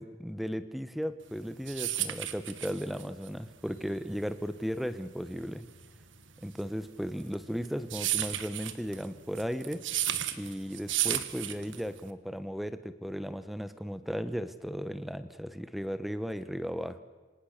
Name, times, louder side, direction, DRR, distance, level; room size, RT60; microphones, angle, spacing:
voice 1, 0.0-5.7 6.4-9.8 10.3-17.0, equal, ahead, 11 dB, 1.1 m, -36 dB
sound 1, 1.3-12.1, right 12 dB, 65° right, 1.5 m, -34 dB
28.0 x 25.5 x 6.7 m, 1.4 s
head